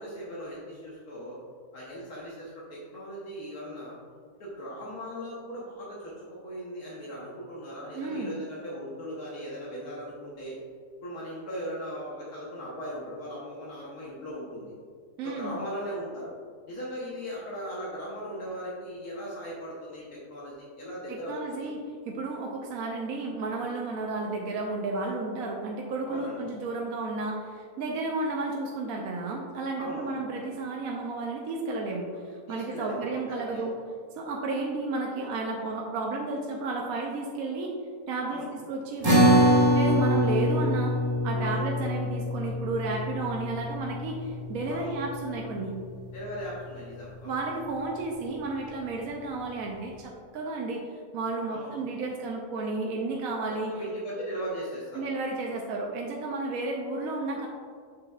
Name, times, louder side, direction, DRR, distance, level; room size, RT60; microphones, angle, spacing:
voice 1, 0.0-1.4 1.7-3.9 4.4-6.1 6.4-10.6 11.0-14.7 15.2-16.3 16.7-21.7 26.1-26.4 29.8-30.2 32.5-33.7 38.3-38.5 41.4-41.6 44.7-45.0 46.1-47.4 51.5-51.8 53.7-55.1, equal, 75° left, -6 dB, 1.6 m, -38 dB
voice 2, 7.9-8.3 15.2-15.6 21.1-21.8 22.1-33.7 34.2-37.7 38.1-39.4 39.7-40.9 41.2-45.8 47.2-50.8 51.1-53.7 54.9-57.5, right 3 dB, 70° right, 0 dB, 1.1 m, -32 dB
sound 1, 39.0-45.7, equal, 25° right, 1.2 m, -24 dB
7.5 x 6.3 x 2.4 m, 2.1 s
omnidirectional pair, 1.6 m